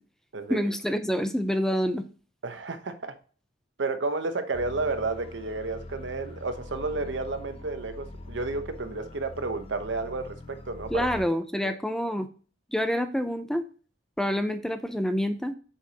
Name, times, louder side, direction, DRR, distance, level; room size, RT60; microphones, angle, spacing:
voice 1, 0.5-2.0 10.9-12.3 12.7-13.7 14.2-15.5, equal, 5° left, 0.5 m, -27 dB
voice 2, 2.4-3.1 3.8-11.1 11.6-11.7, right 3 dB, 75° right, 0.9 m, -31 dB
sound 1, 4.5-11.3, left 2 dB, 30° left, 0.9 m, -43 dB
7.2 x 4.9 x 2.8 m
head